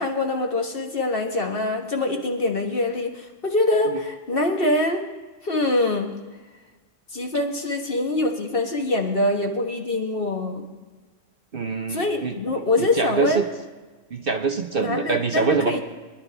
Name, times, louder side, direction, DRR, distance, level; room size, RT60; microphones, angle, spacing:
voice 1, 0.0-5.0 5.4-6.1 7.1-10.7 11.9-13.4 14.8-15.8, left 2 dB, 45° left, 2 dB, 1.6 m, -24 dB
voice 2, 11.5-12.4 12.8-13.5 14.1-15.8, right 4 dB, 50° right, 5 dB, 0.9 m, -24 dB
24.0 x 11.0 x 3.4 m, 1.3 s
omnidirectional pair, 1.4 m